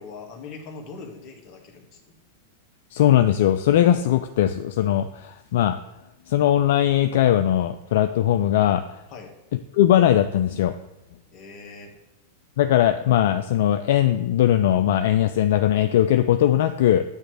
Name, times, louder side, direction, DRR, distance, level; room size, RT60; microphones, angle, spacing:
voice 1, 0.0-2.0 9.1-9.3 11.3-11.9, left 4 dB, 45° left, 1 dB, 1.6 m, -41 dB
voice 2, 2.9-5.8 6.3-9.0 9.7-10.7 12.6-17.0, left 11 dB, 65° left, 9 dB, 0.3 m, -20 dB
8.8 x 3.1 x 6.2 m, 0.90 s
hypercardioid pair, 110°, 0 cm